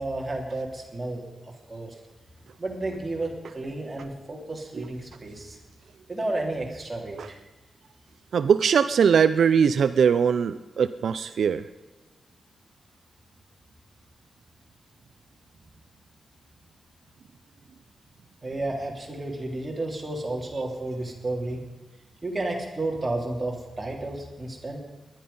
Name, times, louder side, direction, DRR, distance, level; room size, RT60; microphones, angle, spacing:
voice 1, 0.0-1.9 2.6-5.6 6.1-7.4 18.4-21.6 22.2-24.8, right 2 dB, 20° right, -1 dB, 3.2 m, -32 dB
voice 2, 8.3-11.6, right 7 dB, 70° right, 12 dB, 0.5 m, -21 dB
19.0 x 11.5 x 5.4 m, 1.2 s
wide cardioid pair, 165°, 0 cm